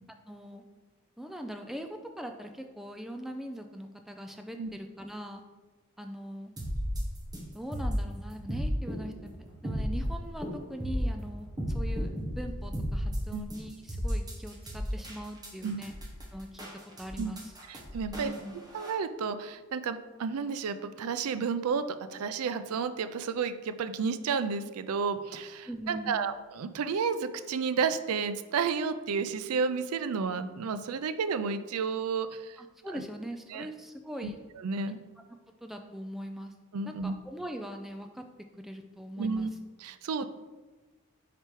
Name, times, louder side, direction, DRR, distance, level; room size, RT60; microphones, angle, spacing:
voice 1, 0.3-0.6 1.2-5.4 6.0-6.5 7.5-9.3 9.6-15.9 16.3-16.7 17.0-17.5 18.1-18.5 25.6-26.3 32.6-34.4 34.9-35.0 35.6-36.5 36.8-38.3 38.6-39.5, equal, ahead, 4 dB, 0.3 m, -41 dB
sound 1, 6.6-18.9, equal, 20° right, 1.2 m, -34 dB
voice 2, 17.7-18.3 18.7-21.8 22.1-32.6 32.9-33.0 33.5-33.7 34.2-34.3 34.6-35.0 36.7-37.2 39.2-39.5 39.8-40.3, right 5 dB, 90° right, 11 dB, 0.4 m, -31 dB
5.0 x 4.4 x 4.5 m, 1.2 s
head